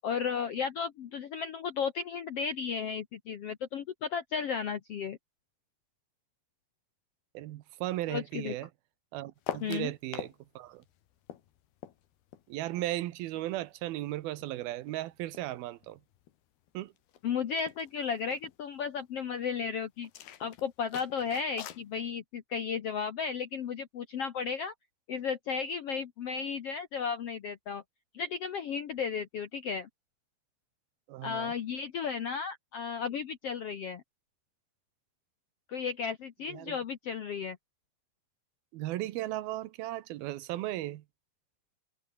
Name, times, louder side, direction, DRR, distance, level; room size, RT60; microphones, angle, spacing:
voice 1, 0.0-5.2 8.1-8.5 9.6-9.9 17.2-20.1 20.4-24.7 25.1-27.8 28.1-29.9 31.2-34.0 35.7-37.6, left 6 dB, 65° left, 1.5 m, -34 dB
voice 2, 7.3-8.7 9.1-10.8 12.5-16.0 16.7-16.9 31.1-31.5 36.5-36.8 38.7-41.0, right 15 dB, 80° right, 2.8 m, -36 dB
sound 1, 9.4-10.4 10.7-13.5 13.8-15.6 15.8-16.4 16.7-16.8 17.0-17.2 17.5-18.6 20.0-21.9, left 11 dB, 80° left, 3.9 m, -44 dB
omnidirectional pair, 4.4 m